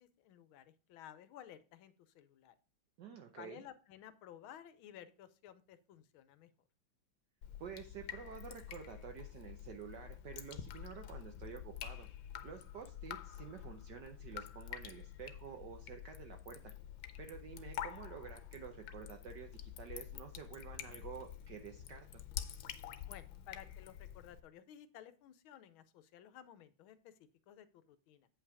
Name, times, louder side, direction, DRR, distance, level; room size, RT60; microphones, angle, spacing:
voice 1, 0.0-2.5 3.4-6.5 23.1-28.3, left 10 dB, 90° left, 13 dB, 1.6 m, -55 dB
voice 2, 3.0-3.6 7.6-12.1 12.4-16.7 17.2-22.2, right 7 dB, 65° right, 5 dB, 1.3 m, -50 dB
Drip, 7.4-24.4, left 10 dB, 70° left, 1.4 m, -48 dB
8.6 x 5.6 x 4.8 m, 0.36 s
omnidirectional pair, 2.2 m